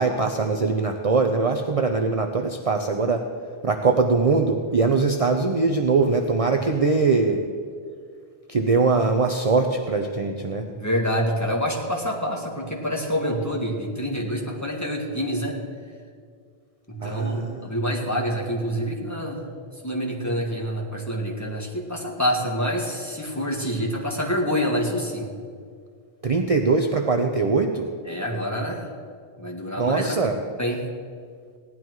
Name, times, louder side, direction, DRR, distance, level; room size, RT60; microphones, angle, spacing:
voice 1, 0.0-3.3 3.6-7.4 8.5-10.7 17.0-17.7 26.2-27.9 29.8-30.4, right 4 dB, 40° right, 4 dB, 0.7 m, -22 dB
voice 2, 10.7-15.6 16.9-19.5 19.8-25.3 28.1-28.9 29.4-30.2 30.6-30.8, equal, 15° left, -2 dB, 2.0 m, -27 dB
17.0 x 11.5 x 4.7 m, 2.1 s
omnidirectional pair, 1.1 m